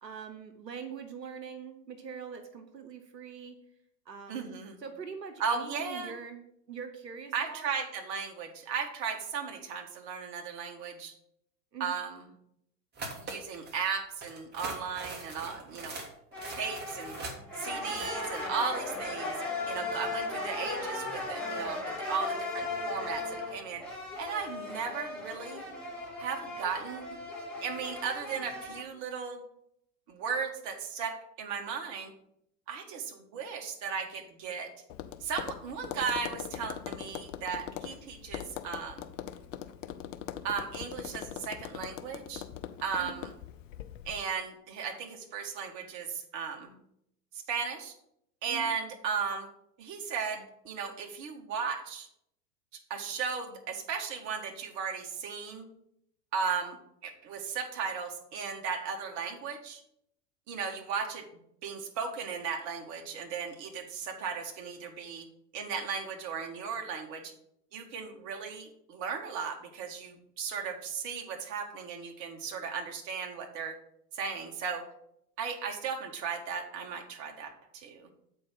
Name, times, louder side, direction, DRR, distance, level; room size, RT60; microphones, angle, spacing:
voice 1, 0.0-3.6 4.1-4.5 4.8-6.4 6.7-7.7 11.7-11.9 43.0-43.2 48.5-48.7, right 6 dB, 85° right, 7 dB, 0.9 m, -43 dB
voice 2, 4.3-4.8 5.4-6.1 7.3-11.1 11.8-12.2 13.2-16.0 16.5-17.2 17.6-19.3 19.7-23.8 24.2-25.6 26.2-27.2 27.6-29.4 30.1-32.1 32.7-34.7 35.2-39.1 40.4-42.4 42.8-43.3 44.0-46.8 47.3-47.9 48.4-49.5 49.8-52.1 52.9-55.6 56.3-56.8 57.0-59.8 60.5-61.2 61.6-65.3 65.5-67.3 67.7-73.8 74.1-74.8 75.4-78.1, right 6 dB, 35° right, 3 dB, 1.4 m, -36 dB
sound 1, 13.0-13.8 14.2-18.5, right 2 dB, 20° right, 1.6 m, -42 dB
sound 2, 16.3-28.8, left 2 dB, ahead, 2.9 m, -37 dB
Tap, 34.9-44.2, left 10 dB, 50° left, 0.7 m, -41 dB
7.7 x 4.7 x 5.6 m, 0.74 s
figure-of-eight pair, 95°, 48 cm